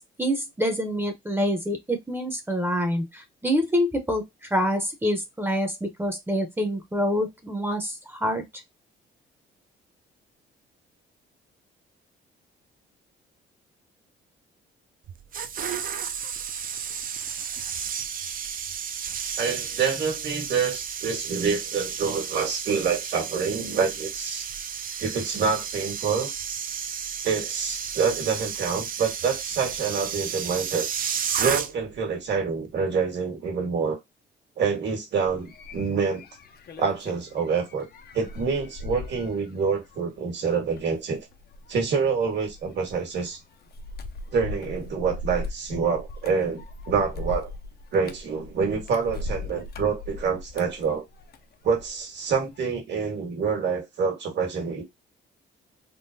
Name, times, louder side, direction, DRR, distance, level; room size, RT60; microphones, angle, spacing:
voice 1, 0.2-8.4, equal, 10° right, 0.7 m, -26 dB
sound 1, 15.1-32.0 32.3-32.6, right 7 dB, 45° right, 0.5 m, -32 dB
voice 2, 19.4-24.5 25.0-26.3 27.2-30.9 31.4-34.0 34.6-36.2 36.8-37.9 38.1-41.3 41.7-43.4 44.3-47.5 47.9-51.0 51.6-54.8, right 5 dB, 65° right, 1.5 m, -27 dB
sound 2, 35.3-52.0 52.3-52.8, left 2 dB, 50° left, 0.6 m, -39 dB
3.7 x 2.0 x 2.6 m
cardioid pair, 90°, 20 cm